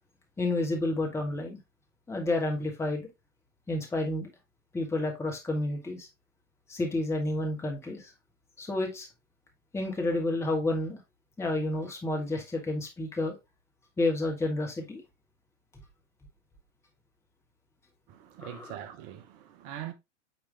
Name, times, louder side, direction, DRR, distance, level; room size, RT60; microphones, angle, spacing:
voice 1, 0.4-1.6 2.1-3.1 3.7-4.3 4.7-6.1 6.7-8.1 8.6-9.1 9.7-11.0 11.4-13.3 14.0-15.0 18.4-18.7, left 2 dB, 5° left, 1.4 m, -30 dB
voice 2, 18.1-19.9, right 11 dB, 35° right, 0.9 m, -42 dB
9.2 x 3.3 x 3.2 m
figure-of-eight pair, 95°, 37 cm